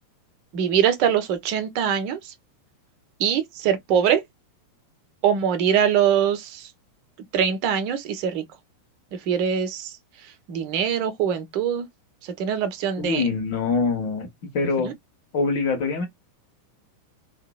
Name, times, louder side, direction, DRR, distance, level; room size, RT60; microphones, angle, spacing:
voice 1, 0.5-2.3 3.2-4.2 5.2-6.7 7.3-8.4 9.3-9.9 10.5-11.9 12.4-13.2 14.8-14.9, right 8 dB, 45° right, 0.7 m, -23 dB
voice 2, 13.0-14.3 14.5-14.9 15.3-16.1, left 4 dB, 45° left, 1.1 m, -24 dB
2.8 x 2.5 x 2.2 m
figure-of-eight pair, 90°, 0 cm